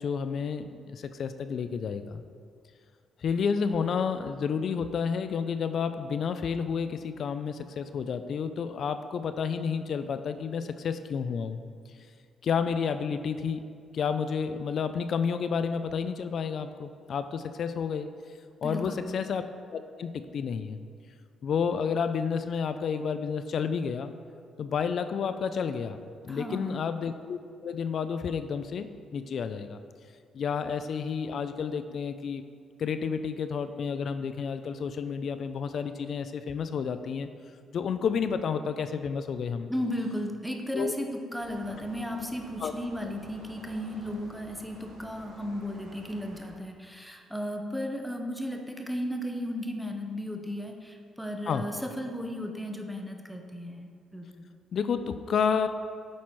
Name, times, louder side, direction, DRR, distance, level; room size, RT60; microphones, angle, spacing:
voice 1, 0.0-2.2 3.2-11.6 12.4-13.6 13.9-18.1 18.6-19.4 19.7-20.8 21.4-24.1 24.6-29.8 30.3-32.4 32.8-37.3 37.7-39.7 40.7-40.9 42.6-42.7 51.5-51.7 54.7-55.7, left 6 dB, 60° left, 10 dB, 0.3 m, -30 dB
voice 2, 18.6-19.1 26.3-26.9 39.7-54.5, equal, ahead, 3 dB, 0.7 m, -35 dB
sound 1, 41.4-46.5, right 2 dB, 90° right, 1.3 m, -50 dB
7.4 x 4.3 x 4.5 m, 2.2 s
cardioid pair, 90°, 0 cm